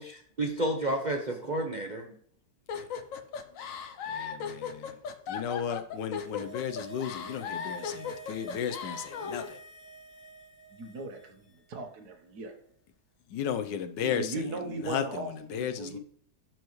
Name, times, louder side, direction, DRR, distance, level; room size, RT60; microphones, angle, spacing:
voice 1, 0.0-2.1, right 1 dB, 40° right, 0.6 m, -31 dB
sound 1, 2.7-9.5, left 6 dB, 60° left, 1.0 m, -37 dB
voice 2, 4.1-4.9 5.3-9.6 13.3-16.0, left 8 dB, 85° left, 1.4 m, -35 dB
sound 2, 6.0-11.5 11.8-11.9, right 4 dB, 35° left, 1.4 m, -49 dB
voice 3, 10.7-12.5 14.0-16.0, right 2 dB, 65° right, 1.7 m, -38 dB
11.5 x 4.6 x 3.1 m
omnidirectional pair, 1.8 m